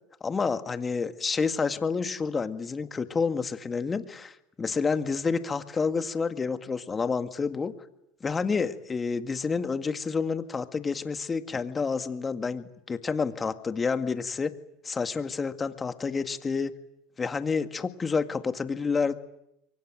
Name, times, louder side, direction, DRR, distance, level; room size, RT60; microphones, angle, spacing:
voice 1, 0.2-7.7 8.2-14.5 14.8-16.7 17.2-19.1, left 5 dB, 25° left, 9 dB, 1.9 m, -29 dB
27.5 x 23.5 x 9.0 m, 0.84 s
supercardioid pair, 105°, 0 cm